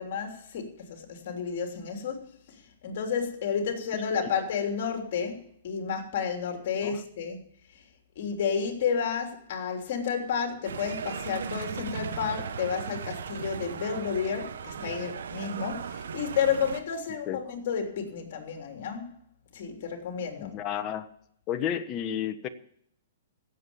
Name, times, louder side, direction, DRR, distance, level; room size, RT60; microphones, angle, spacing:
voice 1, 0.0-2.2 2.8-7.4 8.1-19.1 19.5-20.5, left 7 dB, 55° left, 3.3 m, -31 dB
sound 1, 10.6-16.8, right 7 dB, 80° right, 1.1 m, -37 dB
voice 2, 20.4-21.1 21.5-22.5, left 9 dB, 30° left, 1.2 m, -31 dB
16.5 x 7.7 x 7.1 m
hypercardioid pair, 140°, 0 cm